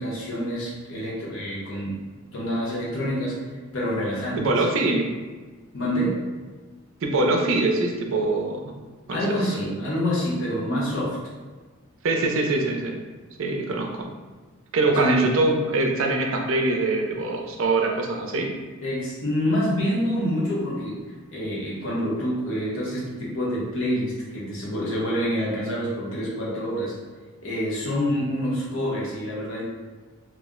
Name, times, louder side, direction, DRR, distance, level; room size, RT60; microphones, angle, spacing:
voice 1, 0.0-2.0 2.3-3.4 3.7-4.5 5.7-6.2 9.1-11.2 14.9-15.3 18.8-21.0 21.3-26.9 27.4-29.6, equal, 70° left, -6 dB, 0.9 m, -27 dB
voice 2, 4.4-5.1 7.0-8.7 9.1-9.4 9.7-9.8 12.0-13.0 13.4-14.1 14.7-18.5, right 2 dB, 70° right, 2 dB, 0.4 m, -23 dB
2.4 x 2.0 x 3.5 m, 1.3 s
head